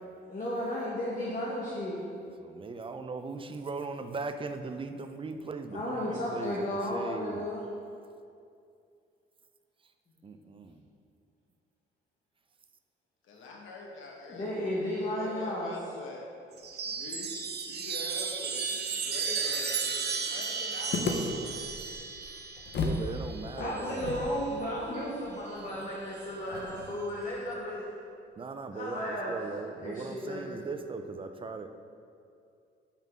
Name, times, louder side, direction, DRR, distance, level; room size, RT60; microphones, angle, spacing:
voice 1, 0.3-2.0 5.7-7.6 14.3-15.7 23.6-27.9 28.7-29.3 29.8-30.6, left 1 dB, 40° left, -6 dB, 1.5 m, -34 dB
voice 2, 2.4-7.5 9.8-9.9 10.2-10.9 22.8-24.1 28.4-31.7, right 4 dB, 25° right, 8 dB, 0.5 m, -39 dB
voice 3, 13.2-14.7 15.0-16.2 16.8-17.3 17.7-21.5, left 2 dB, 80° left, 0 dB, 1.2 m, -45 dB
Chime, 16.5-24.4 25.6-26.2, right 5 dB, 55° right, 0.8 m, -35 dB
sound 1, 20.9-23.1 23.3-23.4 24.0-27.1, left 3 dB, 65° left, 0.9 m, -36 dB
5.7 x 5.4 x 6.1 m, 2.4 s
cardioid pair, 90°, 20 cm